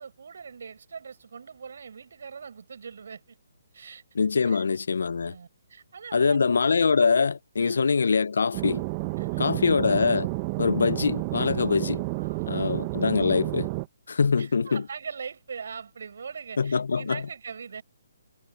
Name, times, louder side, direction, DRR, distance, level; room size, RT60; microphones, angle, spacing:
voice 1, 0.0-3.4 3.7-4.0 4.4-4.6 5.2-6.4 6.7-6.9 7.6-7.9 9.2-9.6 12.2-12.7 14.4-17.8, right 6 dB, 65° right, 5.7 m, -41 dB
voice 2, 4.2-5.3 6.1-8.8 9.4-10.3 10.6-12.0 12.5-13.7 14.1-14.8 16.6-17.2, left 5 dB, 70° left, 0.7 m, -23 dB
sound 1, 8.5-13.9, right 25 dB, 30° right, 1.1 m, -30 dB
hypercardioid pair, 145°, 0 cm